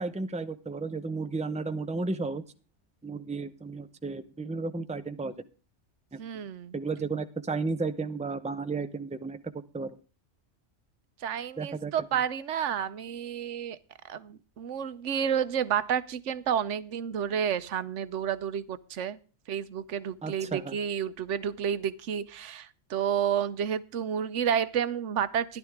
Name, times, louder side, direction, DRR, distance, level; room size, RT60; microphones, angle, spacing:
voice 1, 0.0-2.4 3.0-5.3 6.1-6.2 6.7-9.4 9.7-10.0 11.6-11.9 20.2-20.8, right 3 dB, 5° right, 10 dB, 0.6 m, -33 dB
voice 2, 6.2-6.7 11.2-13.8 14.0-19.2 19.5-25.6, right 8 dB, 85° right, 14 dB, 1.1 m, -30 dB
13.5 x 11.0 x 3.6 m, 0.35 s
omnidirectional pair, 1.2 m